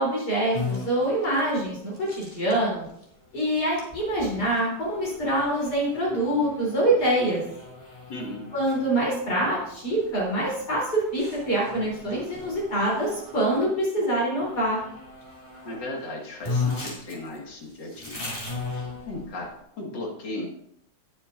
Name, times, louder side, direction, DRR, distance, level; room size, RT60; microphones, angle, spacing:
voice 1, 0.0-2.9 3.3-7.4 8.5-14.8, right 1 dB, 60° left, -6 dB, 4.2 m, -25 dB
sound 1, 0.5-13.7 14.4-15.8 16.1-16.2 16.4-19.5, left 3 dB, 20° left, 2.9 m, -37 dB
voice 2, 8.1-8.4 15.7-18.2 19.1-20.5, left 2 dB, 75° left, -1 dB, 2.6 m, -36 dB
19.0 x 7.1 x 2.6 m, 0.73 s
omnidirectional pair, 1.9 m